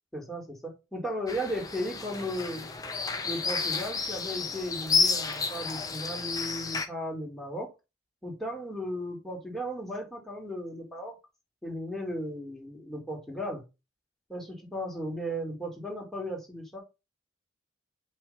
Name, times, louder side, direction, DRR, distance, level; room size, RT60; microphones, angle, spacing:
voice 1, 0.1-2.7 3.2-7.7 8.2-11.1 11.6-13.6 14.3-16.8, equal, ahead, -2 dB, 2.2 m, -35 dB
sound 1, 1.3-6.9, left 4 dB, 20° left, 0.7 m, -31 dB
5.3 x 3.3 x 5.5 m, 0.26 s
head